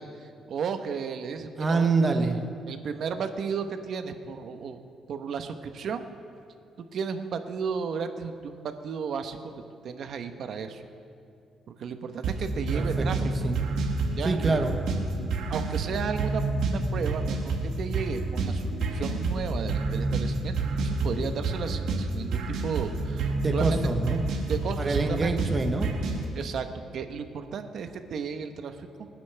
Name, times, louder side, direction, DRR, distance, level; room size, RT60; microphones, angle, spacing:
voice 1, 0.0-1.9 2.2-2.3 2.7-4.8 5.1-6.0 6.9-9.5 9.8-10.9 11.7-13.5 14.2-14.6 15.5-23.8 24.5-25.3 26.3-26.7 26.9-29.1, right 6 dB, 65° right, 8 dB, 1.0 m, -34 dB
voice 2, 1.6-2.4 12.7-13.6 14.2-14.8 23.4-24.3 24.8-25.9, right 3 dB, 30° right, 5 dB, 1.1 m, -26 dB
sound 1, 12.2-26.2, right 3 dB, 80° right, 2.1 m, -29 dB
26.5 x 9.3 x 3.4 m, 2.5 s
cardioid pair, 90°, 0 cm